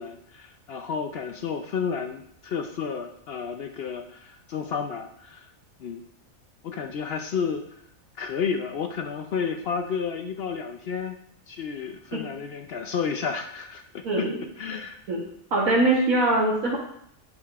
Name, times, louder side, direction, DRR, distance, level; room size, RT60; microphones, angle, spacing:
voice 1, 0.0-5.5 5.8-6.0 6.6-7.6 8.2-11.2 11.5-14.3 14.6-15.0, left 6 dB, 65° left, 6 dB, 0.6 m, -31 dB
voice 2, 14.0-14.4 15.1-15.2 15.5-16.8, right 2 dB, 85° right, -5 dB, 1.6 m, -22 dB
8.5 x 6.4 x 2.4 m, 0.71 s
omnidirectional pair, 1.4 m